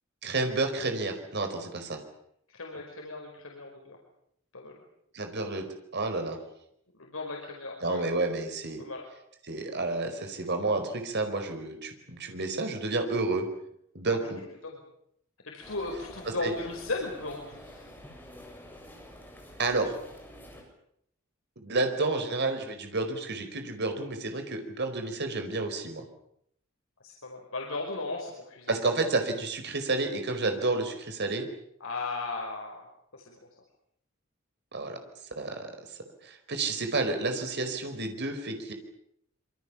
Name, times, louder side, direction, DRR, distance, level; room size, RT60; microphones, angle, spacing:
voice 1, 0.2-2.0 5.1-5.6 5.9-6.4 7.8-8.8 9.4-13.5 13.9-14.4 16.2-16.5 19.6-20.0 21.6-26.0 28.7-31.5 34.7-35.0 35.4-36.0 36.2-38.7, right 3 dB, 55° right, 6 dB, 4.8 m, -30 dB
voice 2, 2.5-4.0 4.5-4.7 7.0-8.0 8.8-9.0 14.6-14.8 15.5-17.9 27.0-28.8 31.8-32.9 33.1-33.4, left 3 dB, 85° left, -1 dB, 5.3 m, -36 dB
sound 1, 15.6-20.6, equal, 10° left, 7.2 m, -48 dB
26.5 x 25.0 x 7.3 m, 0.72 s
head